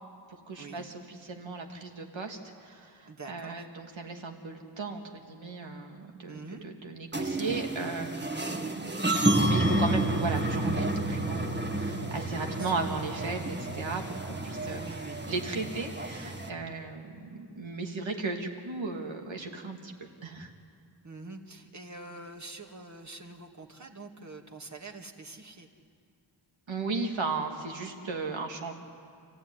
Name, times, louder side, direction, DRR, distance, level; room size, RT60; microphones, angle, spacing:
voice 1, 0.5-9.0 9.3-14.8 15.2-19.9 20.2-20.5 26.7-28.7, right 3 dB, 80° right, 2 dB, 2.8 m, -36 dB
voice 2, 3.0-3.7 6.3-6.7 12.3-12.7 14.7-15.2 15.5-15.6 21.0-25.7, right 3 dB, 40° right, 2 dB, 2.3 m, -45 dB
sound 1, 7.1-16.5, right 1 dB, 25° right, 1.8 m, -30 dB
28.5 x 15.0 x 9.9 m, 2.3 s
wide cardioid pair, 80°, 45 cm